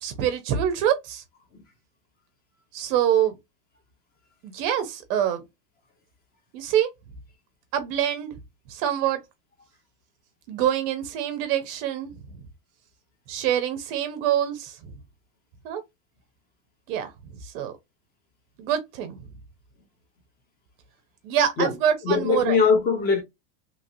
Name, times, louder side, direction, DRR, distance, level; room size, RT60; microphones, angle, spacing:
voice 1, 0.0-1.2 2.7-3.4 4.4-5.4 6.5-6.9 7.7-8.4 8.7-9.2 10.5-12.1 13.3-14.9 15.6-15.8 16.9-17.1 17.4-17.7 18.6-19.2 21.2-22.6, right 10 dB, 40° right, 0.5 m, -25 dB
voice 2, 22.0-23.2, left 5 dB, 20° left, 0.7 m, -21 dB
2.9 x 2.6 x 2.5 m
supercardioid pair, 140°, 46 cm